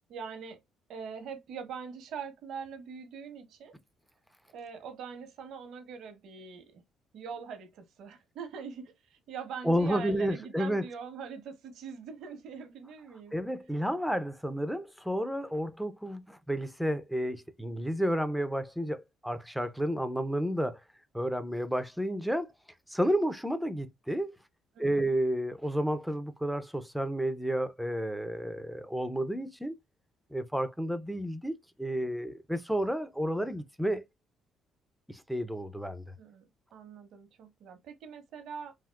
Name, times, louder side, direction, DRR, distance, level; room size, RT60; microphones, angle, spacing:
voice 1, 0.1-0.6 0.9-3.7 4.5-6.8 7.1-13.3 24.7-25.1 36.2-38.7, right 6 dB, 70° right, 0.9 m, -43 dB
voice 2, 9.6-10.8 13.3-20.8 21.1-22.5 22.9-24.4 24.8-29.8 30.3-34.0 35.1-36.0, equal, ahead, 0.4 m, -31 dB
3.5 x 2.4 x 2.3 m
cardioid pair, 110°, 0 cm